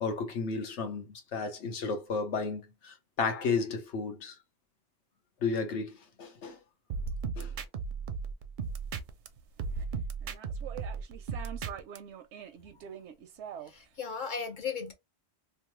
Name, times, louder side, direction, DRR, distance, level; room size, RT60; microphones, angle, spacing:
voice 1, 0.0-1.1 1.3-4.4 5.4-6.6 7.4-7.5, left 4 dB, 85° left, 1.2 m, -33 dB
sound 1, 6.9-9.3 9.6-12.0, right 5 dB, 60° right, 0.6 m, -35 dB
sound 2, 8.6-9.8 10.2-13.9, right 9 dB, 85° right, 0.9 m, -45 dB
voice 2, 13.6-14.9, left 6 dB, 50° left, 0.7 m, -36 dB
3.1 x 2.0 x 3.0 m
omnidirectional pair, 1.1 m